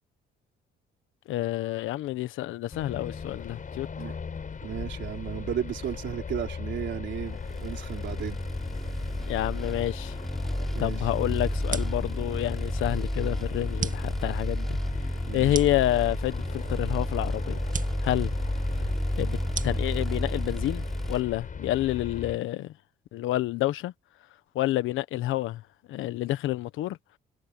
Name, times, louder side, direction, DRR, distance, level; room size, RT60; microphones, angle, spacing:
voice 1, 1.3-3.9 9.3-10.1 10.8-14.8 15.3-17.6 18.0-18.3 19.2-19.4 19.6-22.7 23.1-23.9 24.5-25.6 25.9-27.0, left 15 dB, 90° left, 1.2 m, -28 dB
sound 1, 2.7-22.4, left 6 dB, 40° left, 6.4 m, -38 dB
voice 2, 4.6-8.4 10.7-11.0 15.3-15.6, right 10 dB, 70° right, 3.9 m, -34 dB
sound 2, 7.4-21.2, equal, ahead, 3.8 m, -31 dB
sound 3, 11.6-21.5, right 6 dB, 40° right, 2.1 m, -41 dB
cardioid pair, 90°, 20 cm